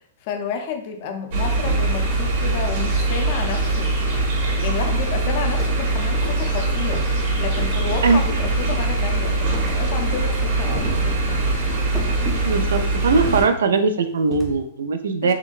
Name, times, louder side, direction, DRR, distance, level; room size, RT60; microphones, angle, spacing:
voice 1, 0.2-3.9 4.6-7.0 7.4-11.5 15.2-15.3, left 6 dB, 50° left, 5 dB, 0.5 m, -31 dB
sound 1, 1.3-13.4, right 2 dB, 60° right, 1.4 m, -22 dB
sound 2, 3.5-3.7 4.1-4.5 4.9-6.0 6.2-6.5 6.9-8.0 8.3-9.0 9.5-10.1 10.4-11.5 11.9-12.7 13.1-13.8 14.3-14.6, right 1 dB, ahead, 0.5 m, -36 dB
voice 2, 12.4-15.3, right 4 dB, 85° right, 8 dB, 0.3 m, -20 dB
3.8 x 2.1 x 2.4 m, 0.64 s
hypercardioid pair, 140°, 0 cm